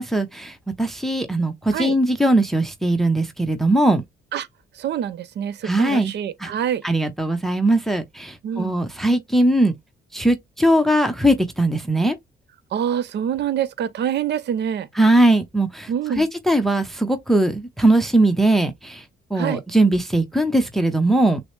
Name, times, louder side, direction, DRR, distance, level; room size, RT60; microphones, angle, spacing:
voice 1, 0.0-4.0 5.6-6.1 6.4-6.5 6.8-9.7 10.1-12.1 15.0-15.9 16.2-19.0 19.3-21.4, right 1 dB, ahead, 0.7 m, -20 dB
voice 2, 4.8-6.8 8.4-8.7 12.7-14.9 15.9-16.3 19.3-19.6, right 9 dB, 60° right, 0.5 m, -25 dB
6.1 x 2.0 x 3.1 m
cardioid pair, 90°, 20 cm